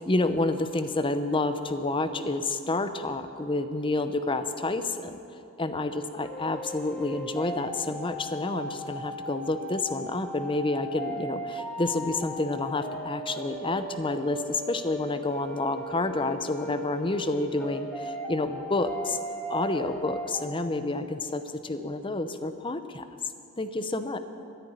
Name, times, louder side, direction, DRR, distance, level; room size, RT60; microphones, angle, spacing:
voice 1, 0.1-5.2 5.6-19.2 19.5-23.1 23.6-24.2, left 2 dB, 25° left, 10 dB, 0.7 m, -29 dB
Medieval Flute Riff, 6.2-20.6, equal, 5° left, 1.1 m, -38 dB
13.5 x 10.5 x 9.4 m, 2.6 s
head